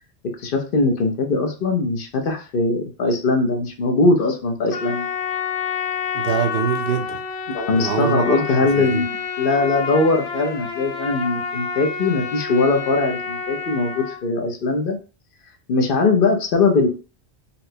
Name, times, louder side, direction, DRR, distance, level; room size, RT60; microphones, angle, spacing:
voice 1, 0.4-5.0 7.5-15.0 15.7-16.9, left 3 dB, 60° left, 4 dB, 0.8 m, -20 dB
Trumpet, 4.7-14.2, left 6 dB, 90° left, 0.9 m, -28 dB
voice 2, 6.1-7.2 7.8-9.0, right 7 dB, 65° right, 5 dB, 0.8 m, -24 dB
4.2 x 2.1 x 2.7 m, 0.35 s
omnidirectional pair, 1.1 m